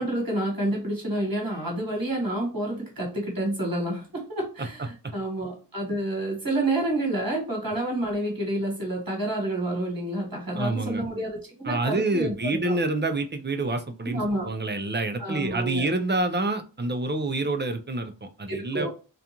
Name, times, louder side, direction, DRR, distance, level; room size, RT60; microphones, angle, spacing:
voice 1, 0.0-12.3 12.7-12.8 14.0-14.5 15.2-15.8 18.5-18.9, right 1 dB, 50° right, -1 dB, 1.3 m, -29 dB
voice 2, 10.5-11.0 11.6-18.9, right 2 dB, 25° right, 6 dB, 0.4 m, -27 dB
2.4 x 2.3 x 2.8 m, 0.34 s
wide cardioid pair, 40°, 45 cm